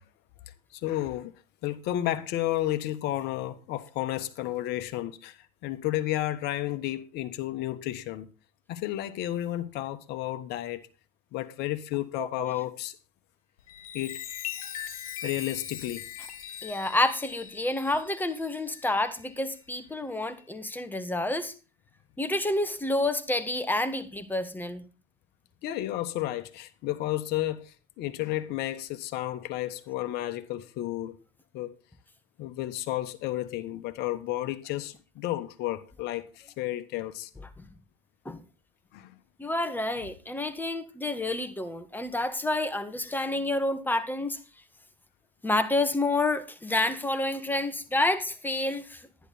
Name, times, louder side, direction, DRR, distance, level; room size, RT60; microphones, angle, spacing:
voice 1, 0.7-1.3 1.6-8.3 8.7-10.9 11.3-13.0 13.9-14.2 15.2-16.1 25.6-31.2 31.5-31.7 32.4-37.3 38.9-39.1, left 14 dB, 65° left, 1.3 m, -32 dB
voice 2, 12.2-12.5 16.6-21.5 22.2-24.8 38.3-38.4 39.4-44.4 45.4-49.0, left 2 dB, 10° left, 1.8 m, -29 dB
Chime, 13.6-19.6 20.1-20.4, left 9 dB, 90° left, 1.7 m, -41 dB
11.0 x 10.5 x 4.2 m
supercardioid pair, 85°, 18 cm